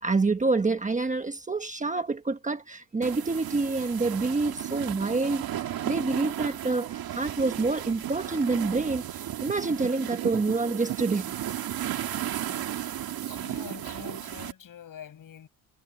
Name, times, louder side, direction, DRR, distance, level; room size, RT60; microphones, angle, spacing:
voice 1, 0.0-9.0 9.4-11.3, right 3 dB, 20° right, 1.3 m, -27 dB
sound 1, 3.0-14.5, right 11 dB, 60° right, 2.0 m, -34 dB
voice 2, 13.3-15.5, left 9 dB, 55° left, 7.2 m, -45 dB
cardioid pair, 125°, 40 cm